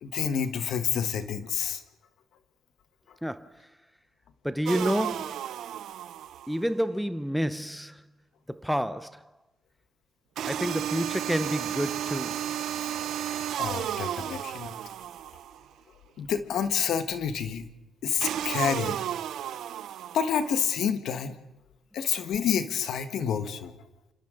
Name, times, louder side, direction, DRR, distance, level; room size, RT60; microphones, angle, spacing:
voice 1, 0.0-1.8 12.8-12.9 13.6-14.7 16.2-17.6 18.0-19.0 20.1-21.3 21.9-23.7, left 7 dB, 75° left, 1.4 m, -28 dB
voice 2, 3.2-3.6 4.4-5.5 6.5-8.0 8.5-9.2 10.5-12.5, equal, ahead, 0.7 m, -29 dB
sound 1, 4.7-6.6 10.4-15.6 18.2-20.6, right 10 dB, 75° right, 0.7 m, -33 dB
28.5 x 26.0 x 3.9 m
cardioid pair, 90°, 0 cm